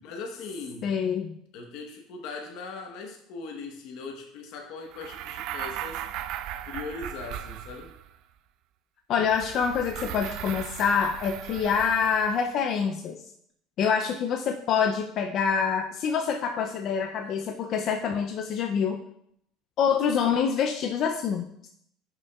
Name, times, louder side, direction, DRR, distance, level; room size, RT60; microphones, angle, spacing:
voice 1, 0.0-0.9 1.5-6.0 6.7-7.9, left 4 dB, 55° left, 1 dB, 1.0 m, -39 dB
voice 2, 0.8-1.4 9.1-13.2 13.8-19.0 19.8-21.7, left 6 dB, 35° left, 4 dB, 0.4 m, -26 dB
sound 1, 4.9-8.2 9.2-12.4, right 11 dB, 50° right, 0.3 m, -37 dB
10.5 x 5.9 x 2.3 m, 0.72 s
cardioid pair, 175°, 0 cm